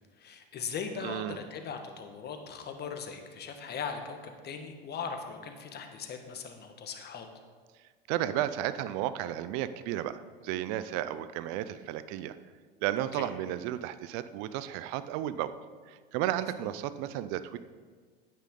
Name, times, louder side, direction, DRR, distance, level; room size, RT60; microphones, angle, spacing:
voice 1, 0.2-7.3 13.2-13.3 16.6-16.7, left 6 dB, 35° left, 5 dB, 1.4 m, -39 dB
voice 2, 1.0-1.4 8.1-12.4 12.8-15.5 15.9-17.6, right 12 dB, 55° right, 14 dB, 0.6 m, -33 dB
9.7 x 9.2 x 3.8 m, 1.5 s
hypercardioid pair, 95°, 29 cm